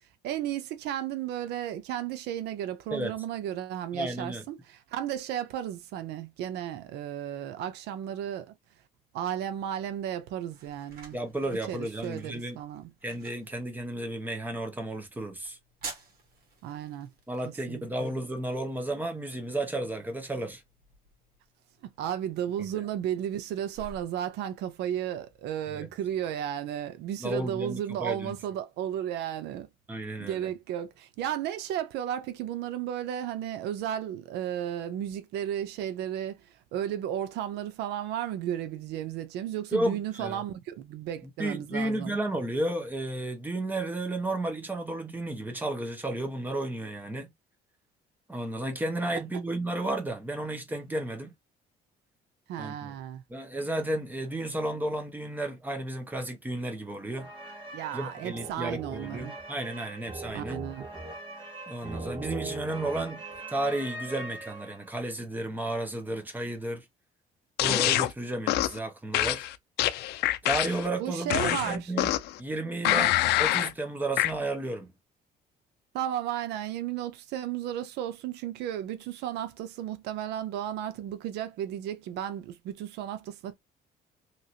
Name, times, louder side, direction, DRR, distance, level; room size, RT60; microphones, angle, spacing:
voice 1, 0.2-8.5 9.1-11.2 11.5-12.9 16.6-17.1 17.7-18.1 21.8-29.7 30.2-42.2 52.5-53.2 57.7-59.3 60.3-60.9 71.0-71.9 72.8-73.1 75.9-83.5, right 10 dB, 80° right, 0.5 m, -34 dB
voice 2, 3.9-4.4 11.1-12.6 13.0-15.6 17.3-20.6 25.7-25.9 27.2-28.3 29.9-30.5 39.7-40.4 41.2-47.3 48.3-51.3 52.6-52.9 53.3-57.3 57.9-60.6 61.7-63.2 63.5-66.8 67.6-69.4 70.4-72.1 72.4-73.1 73.4-74.9, right 1 dB, 10° right, 1.0 m, -33 dB
sound 1, 9.8-27.4, right 3 dB, 65° right, 1.5 m, -52 dB
sound 2, 57.1-65.0, right 2 dB, 30° right, 1.3 m, -40 dB
sound 3, 67.6-68.1 68.5-68.8 69.1-70.9 71.3-72.4 72.8-73.7 74.2-74.3, left 15 dB, 75° left, 0.4 m, -25 dB
2.9 x 2.8 x 2.7 m
cardioid pair, 110°, 17 cm